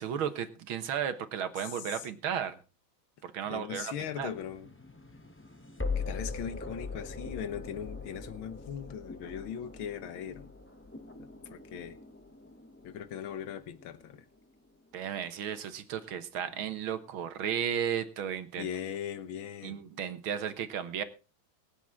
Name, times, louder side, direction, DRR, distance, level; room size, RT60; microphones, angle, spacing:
voice 1, 0.0-2.6 3.2-4.3 14.9-18.7 19.6-21.0, right 8 dB, 85° right, 2.1 m, -34 dB
voice 2, 3.5-4.7 6.0-10.5 11.2-12.0 12.8-14.3 18.6-19.8, left 8 dB, 80° left, 1.9 m, -39 dB
sound 1, 4.0-15.0, left 4 dB, 15° left, 0.5 m, -42 dB
23.0 x 8.2 x 3.6 m
omnidirectional pair, 2.2 m